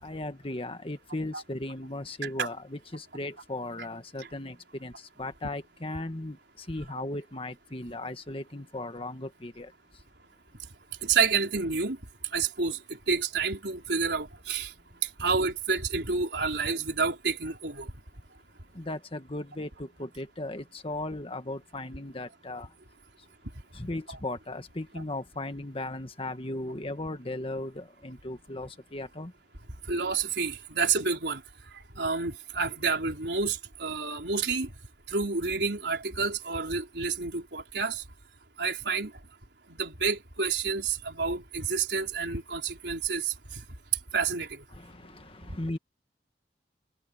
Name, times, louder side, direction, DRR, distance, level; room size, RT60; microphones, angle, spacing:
voice 1, 0.0-9.7 18.7-22.7 23.7-29.3 44.7-45.8, left 2 dB, 30° left, 1.7 m, -37 dB
voice 2, 11.0-12.0 12.3-12.8 13.1-14.7 15.2-17.9 29.9-31.4 32.0-34.7 35.1-38.0 38.6-39.1 39.7-43.3 44.1-44.6, right 5 dB, 70° right, 4.5 m, -29 dB
head